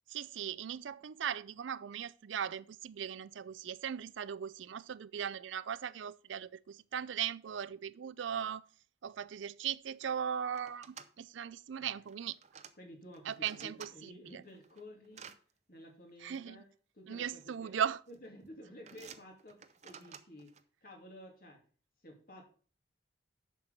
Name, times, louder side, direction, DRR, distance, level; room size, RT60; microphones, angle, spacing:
voice 1, 0.1-8.6 9.0-12.4 13.3-14.4 16.2-16.6 17.1-18.0, right 8 dB, 85° right, 0.4 m, -38 dB
sound 1, 9.4-9.5 9.7-10.1 10.5-11.1 12.0-12.7 13.1-13.9 14.4-15.4 16.3-16.4 17.4-17.8 18.1-18.4 18.9-20.6, right 7 dB, 35° right, 0.6 m, -53 dB
voice 2, 12.7-15.3 15.7-16.7 16.9-17.7 18.1-20.5 20.8-21.6 22.0-22.4, equal, 50° left, 2.7 m, -53 dB
7.1 x 6.0 x 6.6 m
head